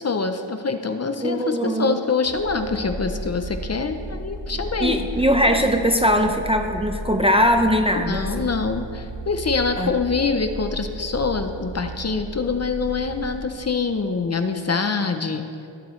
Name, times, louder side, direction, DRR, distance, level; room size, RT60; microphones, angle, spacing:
voice 1, 0.0-5.0 8.1-15.5, left 4 dB, 35° left, 7 dB, 0.6 m, -25 dB
voice 2, 1.2-2.0 4.8-8.5 9.8-9.9, equal, 15° right, 4 dB, 0.5 m, -20 dB
sound 1, 2.2-13.6, right 1 dB, 65° right, 1.4 m, -34 dB
16.5 x 7.6 x 3.2 m, 2.5 s
wide cardioid pair, 120°, 45 cm